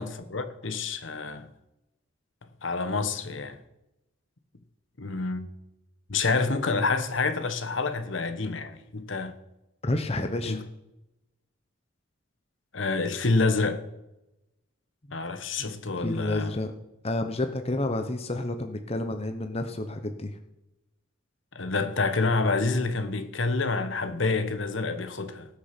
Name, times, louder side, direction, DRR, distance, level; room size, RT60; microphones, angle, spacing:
voice 1, 0.0-1.5 2.6-3.6 5.0-5.5 6.1-9.4 10.4-10.6 12.7-13.8 15.1-16.5 21.5-25.5, left 3 dB, 70° left, 1.2 m, -28 dB
voice 2, 9.8-10.6 15.1-15.2 15.6-16.7 17.0-20.4, left 2 dB, 30° left, 0.9 m, -30 dB
19.0 x 6.5 x 6.0 m
head